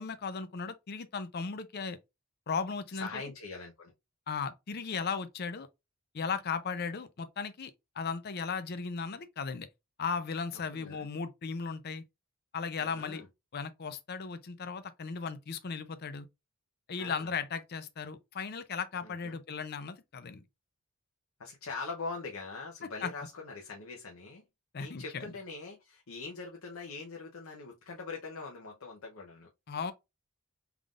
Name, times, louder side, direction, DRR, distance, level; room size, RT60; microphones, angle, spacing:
voice 1, 0.0-2.0 2.5-3.2 4.3-5.7 6.1-9.7 10.0-12.0 12.5-13.2 13.5-16.3 16.9-20.4 23.0-23.1 24.7-25.3 29.7-29.9, left 5 dB, 50° left, 0.5 m, -36 dB
voice 2, 2.9-3.9 10.5-11.1 12.8-13.3 17.0-17.3 19.0-19.4 21.4-24.4 24.8-29.5, left 4 dB, 85° left, 0.8 m, -42 dB
3.6 x 3.5 x 2.4 m
head